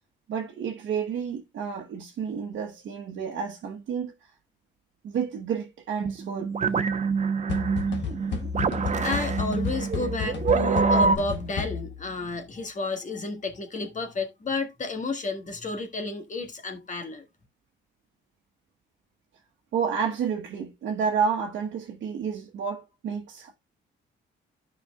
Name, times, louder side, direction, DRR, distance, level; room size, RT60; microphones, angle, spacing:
voice 1, 0.3-4.1 5.0-6.5 19.7-23.5, right 6 dB, 70° right, 1.1 m, -30 dB
sound 1, 6.0-11.2, right 5 dB, 35° right, 0.9 m, -25 dB
sound 2, 7.5-12.1, left 6 dB, 65° left, 1.3 m, -32 dB
voice 2, 9.0-17.2, left 3 dB, 40° left, 1.6 m, -31 dB
13.0 x 5.2 x 2.3 m
cardioid pair, 90°, 20 cm